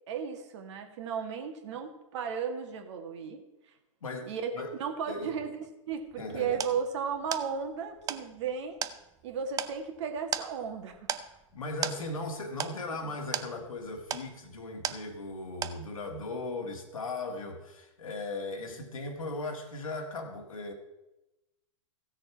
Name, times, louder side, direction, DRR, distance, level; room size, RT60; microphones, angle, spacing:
voice 1, 0.1-3.4 4.2-8.8 9.2-11.0 12.9-13.1, right 6 dB, 60° right, 5 dB, 1.8 m, -35 dB
voice 2, 4.0-4.8 5.1-5.4 6.2-6.6 11.5-20.7, left 2 dB, 85° left, 3 dB, 1.9 m, -38 dB
sound 1, 5.9-15.4 15.6-16.2, right 9 dB, 20° right, 0.5 m, -38 dB
15.5 x 6.7 x 4.7 m, 0.98 s
hypercardioid pair, 115°, 17 cm